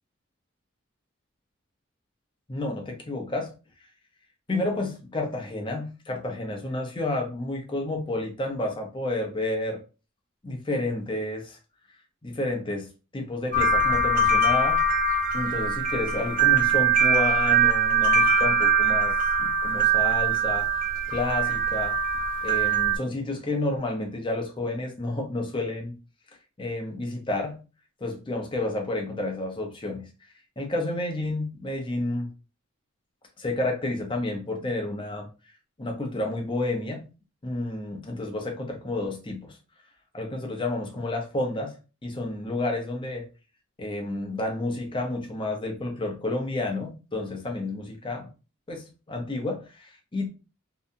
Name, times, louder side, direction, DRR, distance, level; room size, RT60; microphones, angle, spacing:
voice 1, 2.5-3.5 4.5-9.8 10.4-11.6 12.2-14.8 15.3-20.7 21.1-22.0 22.4-26.0 26.6-27.6 28.0-30.1 30.6-32.3 33.4-35.3 35.8-37.1 37.4-39.6 40.1-41.7 42.0-43.3 43.8-48.3 48.7-50.3, left 2 dB, 25° left, 2 dB, 0.6 m, -30 dB
sound 1, 13.5-23.0, right 4 dB, 40° right, 0.8 m, -22 dB
2.7 x 2.2 x 2.5 m, 0.32 s
head